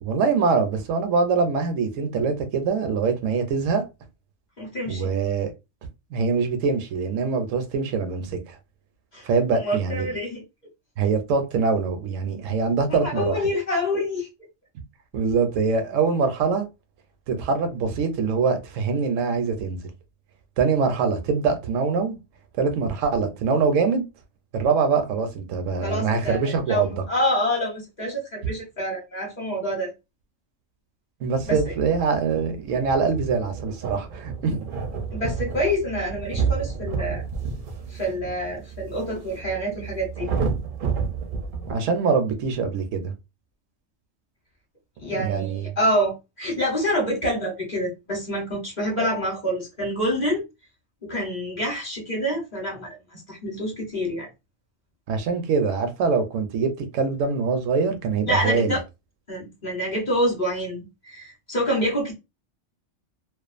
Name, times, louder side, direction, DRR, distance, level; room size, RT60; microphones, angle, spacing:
voice 1, 0.0-3.8 4.9-5.5 6.1-8.6 9.2-10.1 11.0-13.5 15.1-16.7 17.3-19.8 20.6-22.2 22.6-24.0 24.5-26.9 31.2-34.7 41.7-43.1 45.1-45.7 55.1-58.8, right 5 dB, 80° right, 1.0 m, -24 dB
voice 2, 4.6-5.2 9.1-9.2 9.5-10.4 13.0-14.3 25.8-29.9 31.5-31.6 35.1-37.2 37.9-40.3 45.0-50.4 51.0-54.3 58.3-58.8 59.3-62.1, equal, 40° left, 0.9 m, -27 dB
sound 1, 31.4-41.7, right 5 dB, 55° right, 0.6 m, -30 dB
2.4 x 2.3 x 2.4 m
omnidirectional pair, 1.3 m